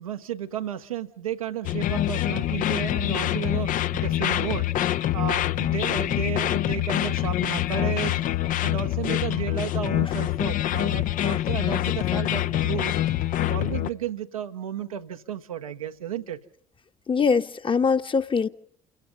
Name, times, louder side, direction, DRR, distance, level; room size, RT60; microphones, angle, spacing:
voice 1, 0.0-4.7 5.1-8.2 8.6-12.9 13.5-16.4, right 9 dB, 80° right, 6 dB, 1.2 m, -33 dB
sound 1, 1.6-13.9, left 13 dB, 50° left, 0.8 m, -25 dB
voice 2, 17.1-18.5, left 5 dB, 30° left, 9 dB, 1.3 m, -22 dB
29.5 x 17.0 x 5.5 m, 0.65 s
figure-of-eight pair, 50°, 18 cm